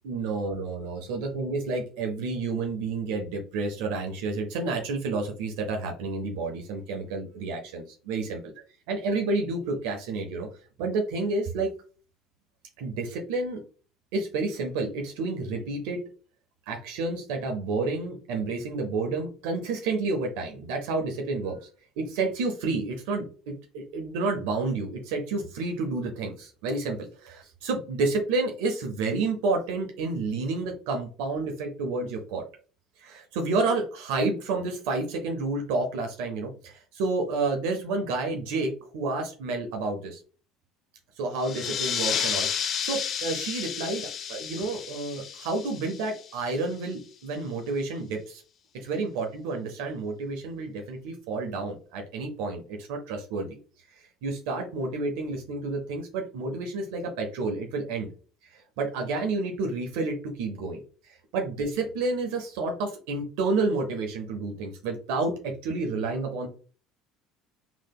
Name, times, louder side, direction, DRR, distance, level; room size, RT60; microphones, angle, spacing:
voice 1, 0.0-8.5 8.9-10.5 10.8-11.7 12.8-13.6 14.1-16.0 16.7-21.7 22.0-32.4 33.0-40.2 41.2-48.4 48.7-53.5 53.9-58.1 58.5-66.5, right 3 dB, 70° right, 3 dB, 0.6 m, -30 dB
sound 1, 41.4-46.6, left 8 dB, 50° left, 0.4 m, -32 dB
3.3 x 2.9 x 2.2 m, 0.39 s
hypercardioid pair, 70°, 0 cm